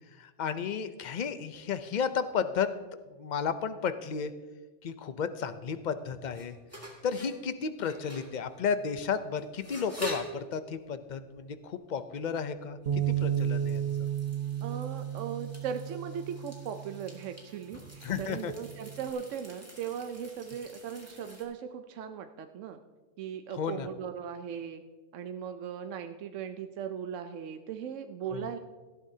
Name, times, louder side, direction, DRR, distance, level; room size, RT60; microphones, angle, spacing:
voice 1, 0.2-2.7 3.2-4.3 4.8-6.5 7.0-14.1 18.0-18.5 23.6-23.9 28.3-28.5, left 6 dB, 45° left, 11 dB, 0.6 m, -33 dB
sound 1, 6.0-21.4, equal, 10° right, 2.1 m, -46 dB
Bass guitar, 12.9-17.3 17.9-19.1, right 10 dB, 50° right, 1.3 m, -33 dB
voice 2, 14.6-22.8 23.2-24.8 25.1-28.6, right 8 dB, 75° right, 8 dB, 1.0 m, -38 dB
18.0 x 12.5 x 2.8 m, 1.3 s
omnidirectional pair, 1.3 m